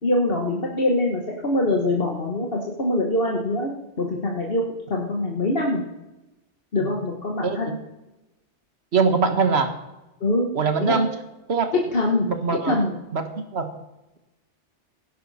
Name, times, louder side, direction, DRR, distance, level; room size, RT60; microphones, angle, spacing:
voice 1, 0.0-3.7 4.0-5.8 6.7-7.7 10.2-10.5 10.8-11.0 11.9-12.3 12.6-13.0, left 1 dB, 55° left, -1 dB, 1.7 m, -23 dB
voice 2, 7.4-7.7 8.9-9.7 10.5-11.1 11.5-11.7 12.3-12.7 13.1-13.3 13.5-13.7, right 5 dB, 60° right, 7 dB, 1.7 m, -22 dB
18.0 x 10.5 x 4.3 m, 0.99 s
omnidirectional pair, 1.2 m